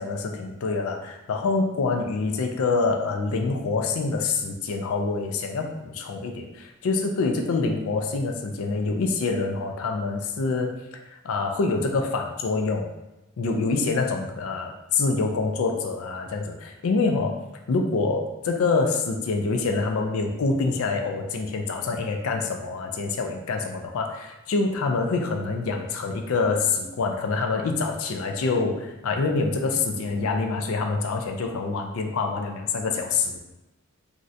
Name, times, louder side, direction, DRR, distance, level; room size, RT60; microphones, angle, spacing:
voice 1, 0.0-10.7 11.1-12.9 13.4-14.7 15.0-17.4 17.7-33.4, left 3 dB, 65° left, 3 dB, 0.4 m, -26 dB
3.1 x 2.5 x 2.6 m, 0.98 s
head